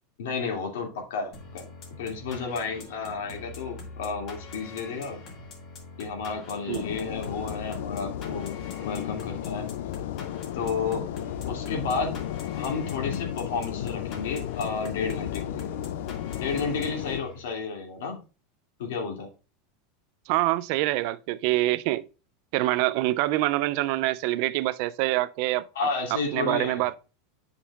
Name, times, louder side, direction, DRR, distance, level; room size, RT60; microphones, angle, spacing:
voice 1, 0.2-1.7 2.0-5.2 6.0-9.7 10.5-11.0 11.4-12.1 12.6-15.7 16.4-18.2 18.8-19.3 25.7-26.8, left 4 dB, 85° left, 2.3 m, -32 dB
Dark Hip Hop Loop, 1.3-17.6, left 3 dB, 35° left, 1.9 m, -44 dB
sound 1, 6.7-17.2, left 12 dB, 70° left, 0.4 m, -34 dB
voice 2, 20.3-22.0 22.5-25.7 26.3-27.0, right 17 dB, 50° right, 0.3 m, -25 dB
8.4 x 5.3 x 2.4 m
supercardioid pair, 160°, 0 cm